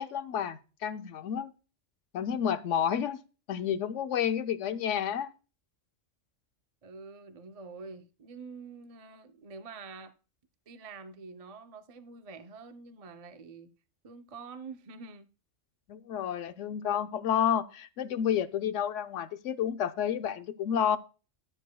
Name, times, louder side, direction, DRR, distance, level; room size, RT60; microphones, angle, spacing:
voice 1, 0.0-1.5 2.1-3.2 3.5-5.3 15.9-21.0, left 8 dB, 75° left, 1.0 m, -30 dB
voice 2, 6.8-10.1 10.7-13.7 14.0-15.3, right 4 dB, 40° right, 0.6 m, -46 dB
12.5 x 9.7 x 2.2 m
omnidirectional pair, 1.3 m